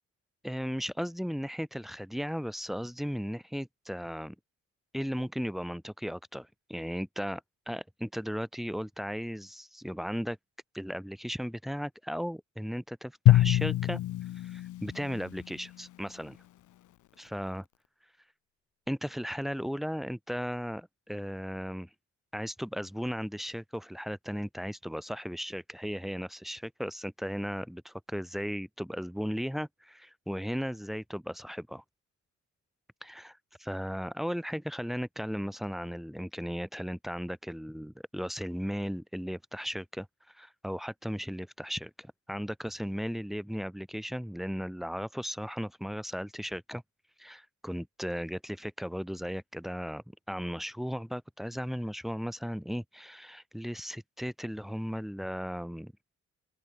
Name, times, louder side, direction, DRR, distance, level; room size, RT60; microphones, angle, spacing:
voice 1, 0.4-4.4 4.9-7.4 7.7-10.4 10.7-14.0 14.3-16.4 17.2-17.6 18.9-21.9 22.3-31.8 33.0-46.8 47.2-55.9, equal, ahead, 5.8 m, -36 dB
Drum, 13.3-15.6, left 14 dB, 75° left, 1.6 m, -25 dB
open air
cardioid pair, 90°, 30 cm